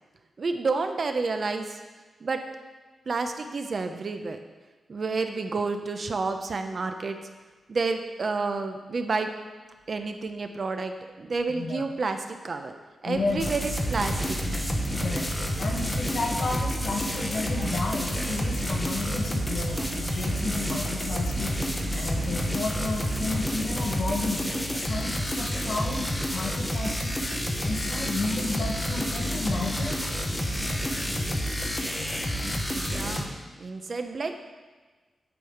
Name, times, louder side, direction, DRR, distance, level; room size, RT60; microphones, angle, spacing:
voice 1, 0.4-1.8 2.2-2.4 3.1-4.4 4.9-7.2 7.7-9.3 9.9-10.9 11.2-12.7 13.0-14.4 32.7-33.3 33.6-34.3, right 3 dB, 40° right, 6 dB, 0.7 m, -30 dB
voice 2, 13.0-13.5 15.0-15.3 15.6-21.6 21.9-27.3 27.6-30.0, left 3 dB, 55° left, 1 dB, 1.5 m, -32 dB
sound 1, 13.1-24.6, right 6 dB, 90° right, 0.5 m, -41 dB
sound 2, 13.4-33.2, equal, 10° left, 1.0 m, -29 dB
8.6 x 5.5 x 7.8 m, 1.3 s
wide cardioid pair, 165°, 0 cm